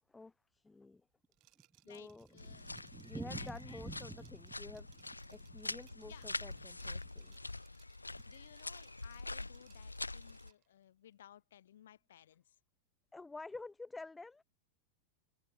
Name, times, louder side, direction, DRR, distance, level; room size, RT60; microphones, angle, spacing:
voice 1, 0.1-1.0 1.9-2.3 3.0-4.9 5.3-7.3 13.1-14.4, left 3 dB, 10° left, 1.1 m, -50 dB
Thunder, 1.2-7.5 7.8-7.9 8.2-8.3 8.5-8.6 9.2-9.5, right 4 dB, 10° right, 0.3 m, -51 dB
Liquid, 1.3-10.7, right 23 dB, 40° right, 2.0 m, -69 dB
voice 2, 1.8-2.7 3.1-3.8 6.1-6.3 8.3-12.6, left 11 dB, 60° left, 1.2 m, -59 dB
sound 1, 2.4-10.5, left 2 dB, 85° left, 0.6 m, -45 dB
figure-of-eight pair, 90°, 0 cm